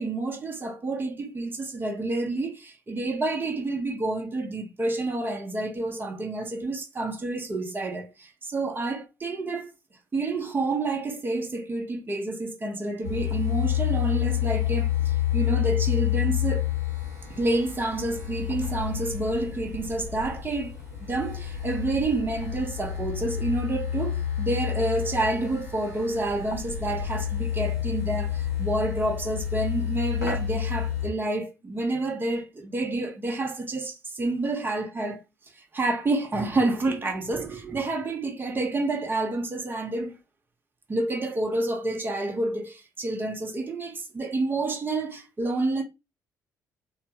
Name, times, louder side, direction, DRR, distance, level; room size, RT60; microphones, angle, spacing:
voice 1, 0.0-9.7 10.1-16.7 17.3-35.2 35.5-40.2 40.9-45.8, right 2 dB, 25° right, 1.0 m, -29 dB
sound 1, 13.0-31.1, left 11 dB, 85° left, 0.8 m, -29 dB
3.7 x 2.2 x 2.9 m
figure-of-eight pair, 45°, 9 cm